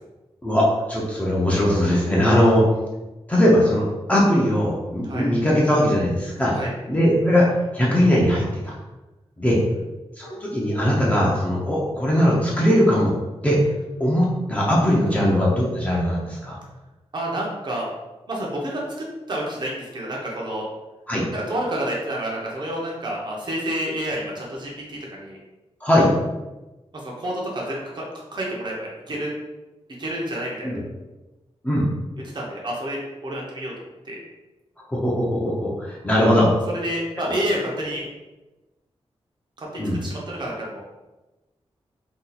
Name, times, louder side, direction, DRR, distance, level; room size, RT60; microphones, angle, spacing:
voice 1, 0.4-2.6 3.3-6.6 6.9-7.5 7.7-8.7 9.4-9.6 10.2-13.1 13.4-13.6 14.0-16.6 21.1-21.3 25.8-26.1 30.6-30.8 31.6-31.9 34.9-36.5 37.2-37.3 39.8-40.0, equal, 15° left, -5 dB, 0.5 m, -20 dB
voice 2, 17.1-17.9 18.3-20.6 21.3-24.7 25.1-25.4 27.0-28.0 28.3-29.3 30.0-30.7 32.3-33.7 34.0-34.2 36.5-38.1 39.6-40.8, right 1 dB, 45° right, -3 dB, 0.7 m, -29 dB
2.8 x 2.3 x 3.9 m, 1.1 s
wide cardioid pair, 150°, 11 cm